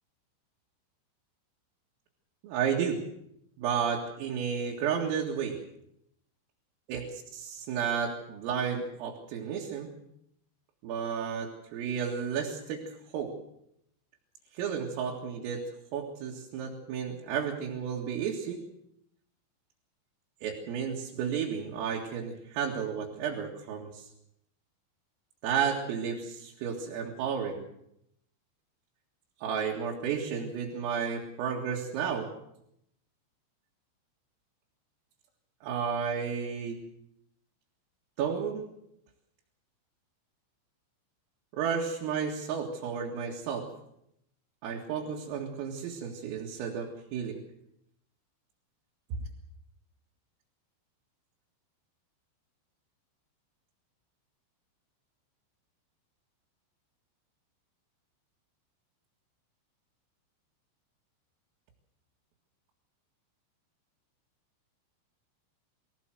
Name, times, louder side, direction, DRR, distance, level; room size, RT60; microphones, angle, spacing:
voice 1, 2.4-3.0 3.6-5.6 6.9-7.0 7.4-9.9 10.8-12.8 13.1-13.3 14.5-15.6 15.9-18.6 20.4-24.1 25.4-27.6 29.4-32.3 35.6-36.8 38.2-38.7 41.5-43.7 44.6-47.4 49.1-49.2, right 7 dB, 80° right, -1 dB, 4.7 m, -32 dB
23.5 x 16.5 x 7.7 m, 0.78 s
omnidirectional pair, 5.9 m